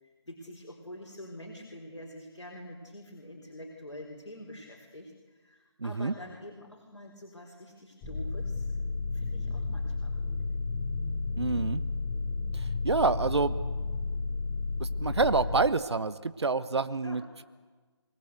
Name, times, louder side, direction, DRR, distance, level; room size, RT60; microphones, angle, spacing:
voice 1, 0.0-8.7 9.1-10.3 17.0-17.2, left 1 dB, 80° left, 0 dB, 4.3 m, -46 dB
voice 2, 5.8-6.1 11.4-11.8 12.5-13.6 14.8-17.4, right 4 dB, 65° right, 14 dB, 1.0 m, -28 dB
sound 1, 8.0-15.6, left 3 dB, 15° left, 3.5 m, -32 dB
24.0 x 19.5 x 8.1 m, 1.4 s
figure-of-eight pair, 155°, 15 cm